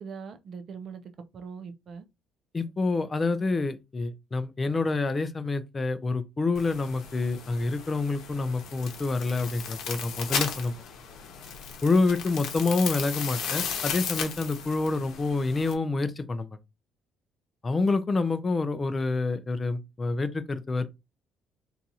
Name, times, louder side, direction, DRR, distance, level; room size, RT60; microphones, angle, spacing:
voice 1, 0.0-2.0, right 6 dB, 45° right, 0.5 m, -41 dB
voice 2, 2.5-10.8 11.8-16.5 17.6-20.9, left 3 dB, 20° left, 0.4 m, -27 dB
sound 1, 6.5-15.7, left 7 dB, 65° left, 0.9 m, -35 dB
2.8 x 2.4 x 4.0 m
cardioid pair, 145°, 0 cm